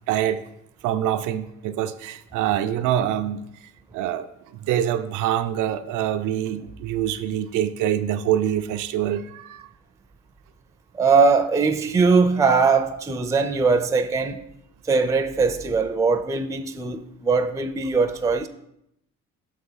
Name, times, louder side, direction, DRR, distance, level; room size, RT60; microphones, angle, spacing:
voice 1, 0.1-0.4 0.8-3.5 3.9-9.7, right 11 dB, 85° right, 0.4 m, -25 dB
voice 2, 10.9-14.4 14.9-18.5, right 4 dB, 10° right, 0.4 m, -20 dB
6.2 x 3.5 x 5.5 m
cardioid pair, 90°, 30 cm